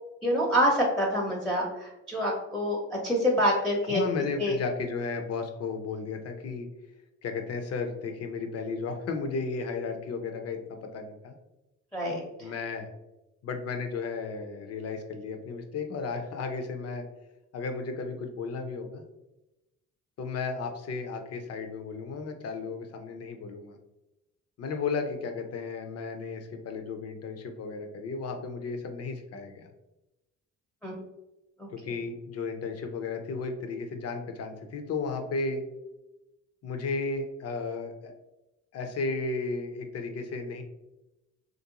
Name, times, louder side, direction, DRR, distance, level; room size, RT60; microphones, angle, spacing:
voice 1, 0.2-2.8 3.0-4.0 4.4-4.5 11.9-12.5 30.8-30.9 31.6-31.7, equal, ahead, -4 dB, 0.7 m, -26 dB
voice 2, 3.9-6.7 7.2-11.3 12.4-12.9 13.4-17.0 17.5-19.0 20.2-23.8 24.6-29.7 31.8-35.6 36.6-38.1 38.7-40.6, left 4 dB, 55° left, 5 dB, 0.6 m, -34 dB
3.1 x 2.6 x 2.9 m, 0.96 s
cardioid pair, 90°, 30 cm